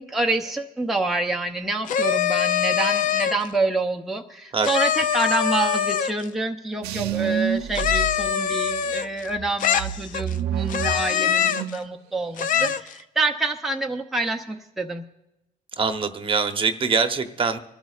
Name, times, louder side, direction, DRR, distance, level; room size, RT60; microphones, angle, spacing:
voice 1, 0.0-15.0, right 2 dB, ahead, 2 dB, 0.7 m, -27 dB
sound 1, 1.9-3.5 4.6-6.3 7.7-9.3 9.6-10.3 10.7-11.7 12.4-12.9, left 9 dB, 50° left, 0.5 m, -23 dB
sound 2, 6.8-8.9 9.3-11.9 12.2-12.8, right 9 dB, 80° right, 0.6 m, -30 dB
voice 2, 15.8-17.6, right 5 dB, 30° right, 8 dB, 0.9 m, -23 dB
25.0 x 12.5 x 2.4 m, 0.92 s
cardioid pair, 110°, 17 cm